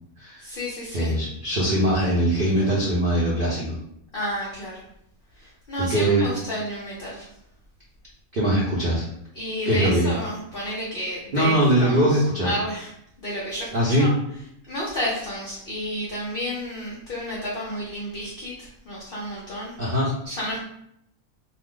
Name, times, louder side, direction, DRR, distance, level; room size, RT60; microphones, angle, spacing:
voice 1, 0.4-1.1 4.1-4.8 5.4-7.3 9.3-12.0 12.4-12.9 13.2-13.7 14.0-14.1 14.7-19.7 20.2-20.6, equal, 55° left, -5 dB, 0.6 m, -31 dB
voice 2, 0.9-3.8 5.8-6.3 8.3-9.0 9.6-10.1 11.3-12.6 13.7-14.1 19.8-20.1, right 1 dB, 50° right, -6 dB, 0.6 m, -21 dB
2.6 x 2.0 x 3.7 m, 0.75 s
omnidirectional pair, 1.6 m